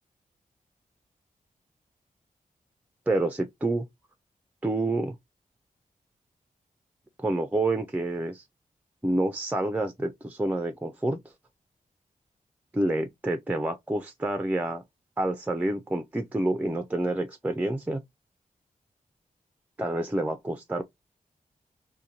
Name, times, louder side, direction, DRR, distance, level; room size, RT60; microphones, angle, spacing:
voice 1, 3.1-3.8 4.6-5.1 7.2-8.4 9.0-11.2 12.7-14.8 15.2-18.0 19.8-20.8, right 2 dB, 10° right, 0.4 m, -28 dB
2.6 x 2.1 x 2.8 m
wide cardioid pair, 90°, 15 cm